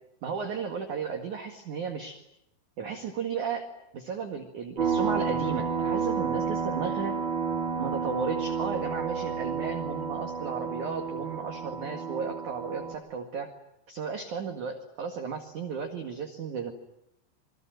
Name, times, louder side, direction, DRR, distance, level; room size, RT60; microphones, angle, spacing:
voice 1, 0.2-2.2 2.8-3.7 3.9-7.2 7.8-13.5 13.9-16.7, right 6 dB, 55° right, 4 dB, 2.4 m, -34 dB
sound 1, 4.8-12.9, right 5 dB, 25° right, 3.6 m, -31 dB
28.0 x 23.0 x 9.2 m, 0.83 s
omnidirectional pair, 5.9 m